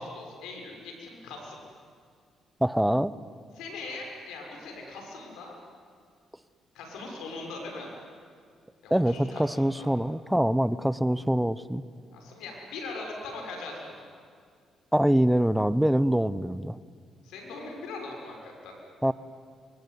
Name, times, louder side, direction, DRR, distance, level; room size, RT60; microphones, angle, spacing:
voice 1, 0.0-1.6 3.6-5.6 6.7-7.9 8.8-9.9 12.1-14.0 17.2-18.7, left 3 dB, 90° left, 1 dB, 6.4 m, -40 dB
voice 2, 2.6-3.1 8.9-11.8 14.9-16.8 19.0-19.1, equal, 5° right, 16 dB, 0.9 m, -24 dB
24.5 x 23.0 x 9.7 m, 2.2 s
cardioid pair, 90°, 0 cm